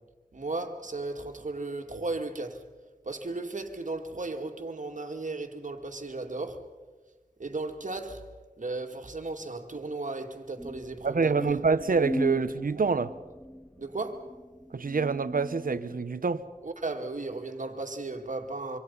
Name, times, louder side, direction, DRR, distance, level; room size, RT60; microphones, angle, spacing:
voice 1, 0.3-2.7 3.0-6.7 7.4-11.6 13.8-14.3 16.6-18.8, right 3 dB, 60° right, 2.3 m, -35 dB
sound 1, 10.6-16.3, equal, 5° left, 0.9 m, -38 dB
voice 2, 11.0-13.1 14.7-16.4, right 4 dB, 80° right, 1.0 m, -26 dB
26.0 x 25.0 x 5.6 m
wide cardioid pair, 50°, 14 cm